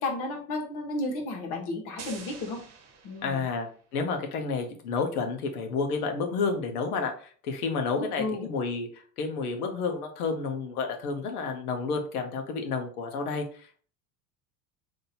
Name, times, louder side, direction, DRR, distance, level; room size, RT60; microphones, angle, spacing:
voice 1, 0.0-2.6 3.0-3.4 8.0-8.5, left 2 dB, 60° left, 2 dB, 1.5 m, -33 dB
sound 1, 2.0-3.8, right 5 dB, 35° right, 1.1 m, -46 dB
voice 2, 3.2-13.4, left 4 dB, 75° left, 5 dB, 1.0 m, -30 dB
3.8 x 2.9 x 4.2 m, 0.43 s
hypercardioid pair, 65°, 45 cm